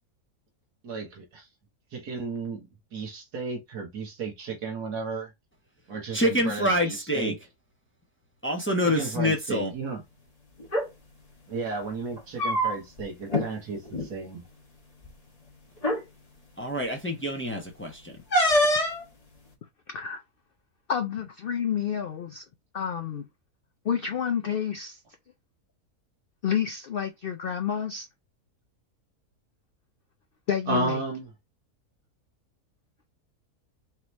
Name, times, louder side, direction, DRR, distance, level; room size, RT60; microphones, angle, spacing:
voice 1, 0.8-1.5 1.9-5.3 5.9-7.4 8.8-10.0 11.5-14.4 30.7-31.3, right 4 dB, 85° right, 2.1 m, -33 dB
voice 2, 6.1-7.3 8.4-9.7 16.6-18.1, left 1 dB, 10° left, 0.8 m, -26 dB
sound 1, 10.6-10.9 12.1-13.0 13.3-13.5 13.8-14.1 15.0-15.1 15.8-16.0 18.3-19.0, equal, 25° left, 1.4 m, -24 dB
voice 3, 19.9-20.2 20.9-22.4 22.7-23.3 23.8-25.0 26.4-28.1 30.5-31.0, left 8 dB, 85° left, 0.4 m, -29 dB
4.8 x 3.0 x 3.3 m
omnidirectional pair, 1.7 m